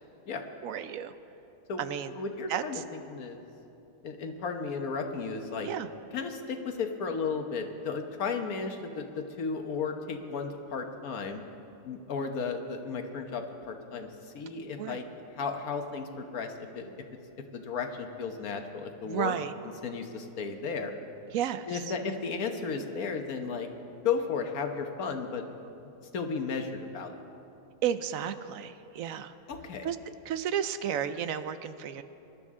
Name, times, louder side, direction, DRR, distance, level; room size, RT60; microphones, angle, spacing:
voice 1, 0.6-1.1 1.8-2.1 2.5-2.8 5.6-5.9 14.8-15.0 19.0-19.5 21.3-21.7 27.8-29.3 29.8-30.0 30.3-32.0, right 9 dB, 70° right, 11 dB, 1.0 m, -32 dB
voice 2, 2.2-3.4 4.0-5.7 6.1-11.4 11.8-14.1 14.3-15.0 15.3-16.9 17.4-19.3 19.8-20.9 21.7-23.7 24.0-25.5 26.1-27.1 29.5-29.9, left 5 dB, 80° left, 5 dB, 1.5 m, -34 dB
24.0 x 12.0 x 3.7 m, 2.9 s
omnidirectional pair, 1.5 m